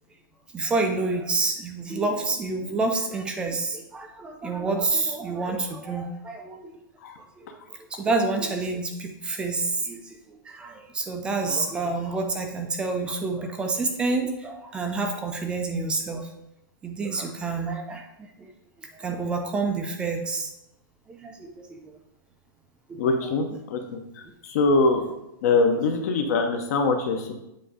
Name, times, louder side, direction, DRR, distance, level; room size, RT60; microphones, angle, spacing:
voice 1, 0.5-6.7 7.7-16.3 16.8-18.5 18.8-20.5 21.1-21.9 22.9-23.3, right 3 dB, 10° right, 4 dB, 0.3 m, -28 dB
voice 2, 23.0-24.0 24.4-25.0 25.4-27.3, left 3 dB, 45° left, 4 dB, 0.8 m, -23 dB
7.5 x 2.6 x 4.9 m, 0.87 s
hypercardioid pair, 165°, 11 cm